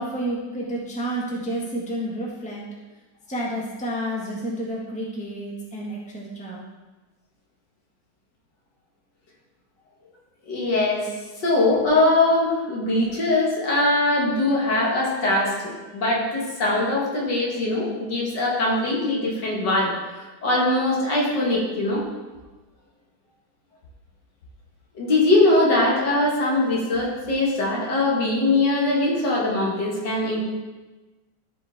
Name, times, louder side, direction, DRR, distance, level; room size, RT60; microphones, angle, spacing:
voice 1, 0.0-2.6 3.3-6.6, right 1 dB, 5° left, -4 dB, 1.5 m, -30 dB
voice 2, 10.5-11.1 11.4-22.1 24.9-30.5, left 2 dB, 65° left, -3 dB, 2.4 m, -22 dB
13.5 x 5.0 x 3.6 m, 1.2 s
omnidirectional pair, 2.0 m